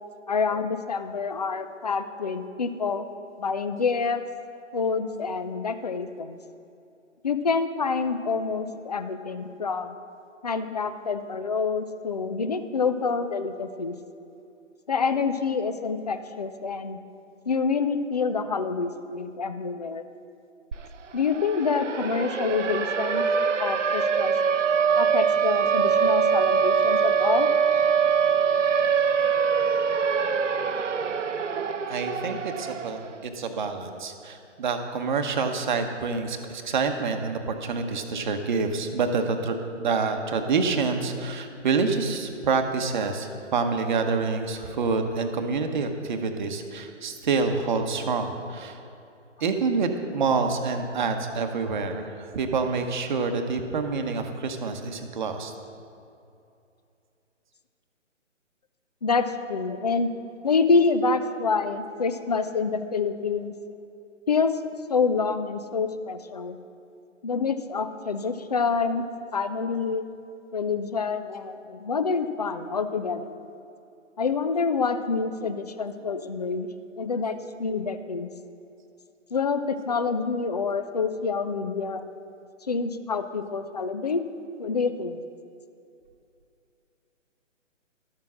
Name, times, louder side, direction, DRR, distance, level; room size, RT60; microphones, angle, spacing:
voice 1, 0.3-3.1 3.4-4.2 4.7-6.4 7.2-9.9 10.4-14.0 14.9-17.0 17.5-20.0 21.1-23.2 23.6-24.3 25.0-27.5 28.4-28.6 32.1-32.4 59.0-60.1 60.4-63.5 64.3-64.5 64.9-66.6 67.2-69.1 69.3-70.1 70.5-73.4 74.2-76.7 77.0-78.3 79.3-82.0 82.7-84.2 84.6-85.2, left 5 dB, 35° left, 10 dB, 0.4 m, -27 dB
Siren, 20.7-20.8 21.1-33.2, right 6 dB, 70° right, 0.7 m, -23 dB
voice 2, 31.9-48.8 49.4-55.5, right 4 dB, 40° right, 6 dB, 1.0 m, -27 dB
12.0 x 7.3 x 6.1 m, 2.6 s
figure-of-eight pair, 145°, 38 cm